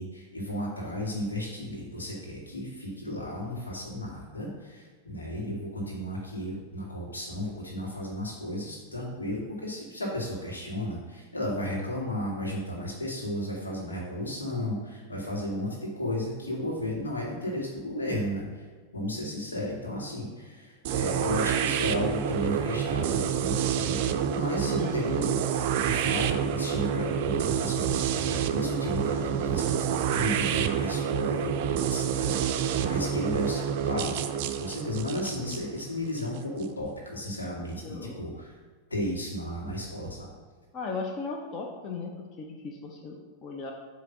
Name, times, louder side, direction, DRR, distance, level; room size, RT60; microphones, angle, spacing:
voice 1, 0.0-18.5 18.9-25.4 25.8-34.2 34.6-38.6 38.9-40.3, left 1 dB, 75° left, -3 dB, 1.9 m, -34 dB
sound 1, 20.8-36.7, right 8 dB, 45° right, 0.4 m, -28 dB
voice 2, 24.8-25.1 33.0-33.2 37.8-38.3 40.7-43.7, left 4 dB, 35° left, 1 dB, 0.8 m, -37 dB
8.4 x 3.2 x 5.8 m, 1.5 s
figure-of-eight pair, 90°, 0 cm